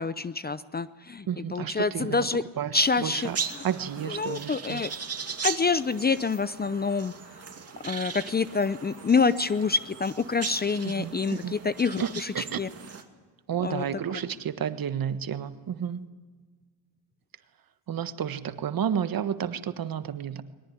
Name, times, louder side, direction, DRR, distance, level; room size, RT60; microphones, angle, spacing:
voice 1, 0.0-1.3 1.5-2.4 2.7-3.3 4.1-4.9 5.4-7.1 7.8-12.3 12.6-12.7 13.6-13.8, left 4 dB, 20° left, 15 dB, 0.6 m, -26 dB
voice 2, 1.3-2.3 2.6-3.4 3.6-4.8 10.8-11.5 12.0-12.6 13.5-16.0 17.9-20.4, right 8 dB, 50° right, 11 dB, 1.5 m, -31 dB
sound 1, 2.7-13.0, right 5 dB, 35° right, 2.5 m, -38 dB
22.0 x 19.0 x 9.8 m, 1.5 s
cardioid pair, 85°, 44 cm